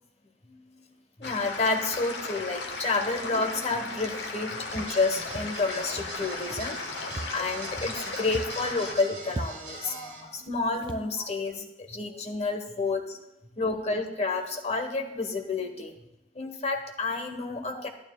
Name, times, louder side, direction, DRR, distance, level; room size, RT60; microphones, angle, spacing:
voice 1, 0.5-0.9 1.2-13.2 13.6-15.9 16.3-17.9, left 3 dB, 40° left, 5 dB, 1.0 m, -30 dB
sound 1, 1.2-8.9, left 3 dB, 80° left, 1.2 m, -36 dB
Walk footsteps, 4.7-5.0 5.3-5.6 5.9-6.2 6.5-6.8 7.1-8.0 8.3-8.6 8.9-9.0 9.3-9.8 10.4-10.5 10.8-11.1, right 2 dB, 25° right, 0.3 m, -39 dB
sound 2, 4.7-10.2, right 2 dB, 50° right, 3.0 m, -43 dB
11.5 x 11.5 x 2.2 m, 0.93 s
head